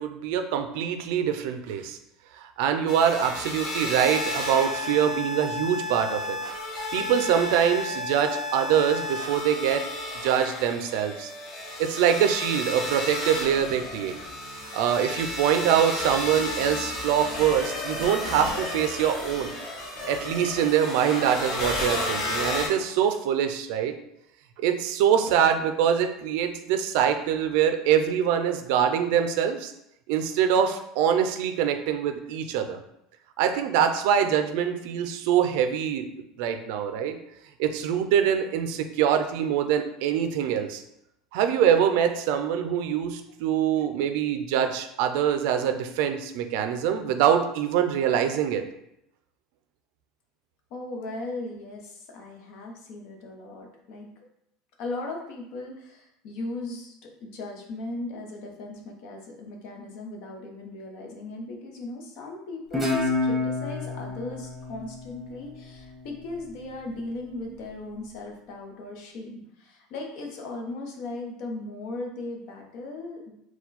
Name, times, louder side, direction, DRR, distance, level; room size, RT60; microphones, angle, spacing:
voice 1, 0.0-2.0 2.4-6.5 6.9-9.8 10.2-11.3 11.8-14.2 14.7-19.5 20.1-23.9 24.6-29.7 30.1-32.8 33.4-36.1 36.4-37.2 37.6-40.8 41.3-48.6, right 9 dB, 70° right, 7 dB, 0.4 m, -24 dB
sound 1, 2.9-22.7, left 2 dB, 40° left, 1.2 m, -32 dB
voice 2, 50.7-54.3 54.8-73.3, left 2 dB, 60° left, 1 dB, 0.9 m, -37 dB
Guitar, 62.7-66.0, left 3 dB, 5° right, 1.0 m, -29 dB
4.3 x 2.3 x 4.1 m, 0.81 s
supercardioid pair, 145°, 0 cm